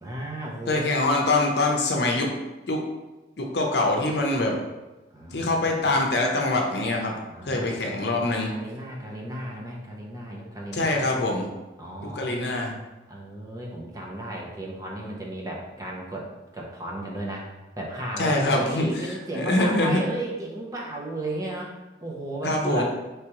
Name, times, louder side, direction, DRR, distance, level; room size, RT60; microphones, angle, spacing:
voice 1, 0.0-0.9 1.3-1.9 5.1-6.0 7.3-7.7 8.5-11.2 11.8-12.5 13.1-17.5 17.8-21.7 22.0-22.8, right 1 dB, 20° right, -2 dB, 0.7 m, -35 dB
voice 2, 0.7-2.3 2.7-2.8 3.4-4.6 5.3-7.1 7.5-8.5 10.7-11.5 12.0-12.8 18.2-18.9 19.3-20.0 22.4-22.8, left 2 dB, 65° left, 1 dB, 0.7 m, -24 dB
4.9 x 3.3 x 2.9 m, 1.1 s
head